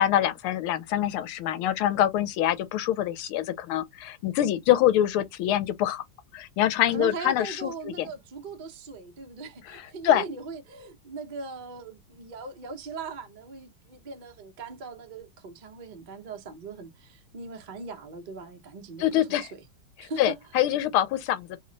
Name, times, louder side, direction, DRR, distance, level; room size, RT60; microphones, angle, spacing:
voice 1, 0.0-6.0 6.3-7.7 8.0-8.1 9.7-10.2 19.0-19.5 20.2-21.6, left 12 dB, 85° left, 1.5 m, -25 dB
voice 2, 6.9-19.6 20.0-20.4, right 4 dB, 80° right, 0.4 m, -39 dB
3.5 x 2.1 x 3.8 m
omnidirectional pair, 2.3 m